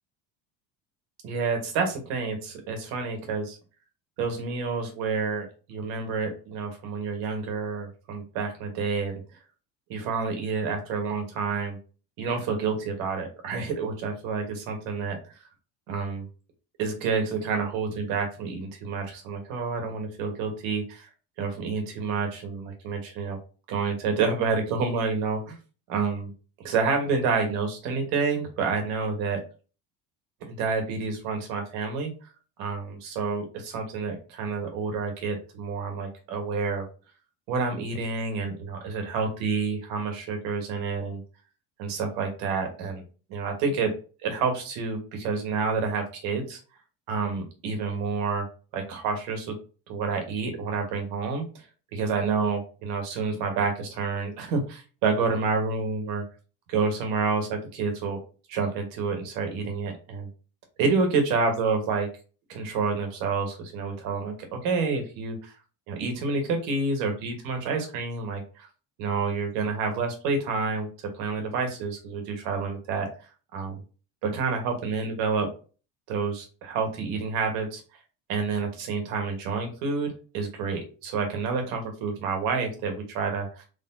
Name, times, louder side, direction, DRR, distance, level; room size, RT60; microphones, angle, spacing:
voice 1, 1.2-3.6 4.2-9.2 9.9-11.8 12.2-15.2 15.9-16.3 16.8-21.1 21.4-23.4 23.7-25.6 25.9-26.3 26.6-29.4 30.4-32.1 32.6-36.9 37.5-41.2 41.8-43.0 43.3-43.9 44.2-46.6 47.1-48.5 48.7-49.5 49.9-51.6 51.9-56.2 56.7-58.2 58.5-60.3 60.8-62.1 62.5-65.5 65.9-68.7 69.0-70.9 71.1-73.1 73.5-73.8 74.2-75.5 76.1-77.8 78.3-83.7, right 4 dB, 75° right, 4 dB, 1.5 m, -28 dB
3.8 x 3.6 x 2.7 m, 0.36 s
supercardioid pair, 110°, 35 cm